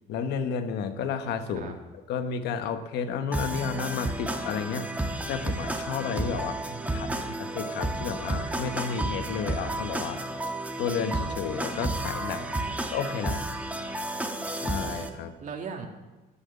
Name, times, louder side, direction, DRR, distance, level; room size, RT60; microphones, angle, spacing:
voice 1, 0.1-1.7 2.1-10.2 10.8-12.6 12.9-13.4 14.6-15.3, left 6 dB, 80° left, 9 dB, 1.3 m, -32 dB
sound 1, 3.3-15.1, right 1 dB, 10° right, 1.5 m, -32 dB
voice 2, 6.7-7.4 12.5-12.7 15.4-15.9, right 6 dB, 50° right, 3 dB, 2.1 m, -39 dB
14.0 x 10.0 x 6.9 m, 1.1 s
cardioid pair, 110°, 17 cm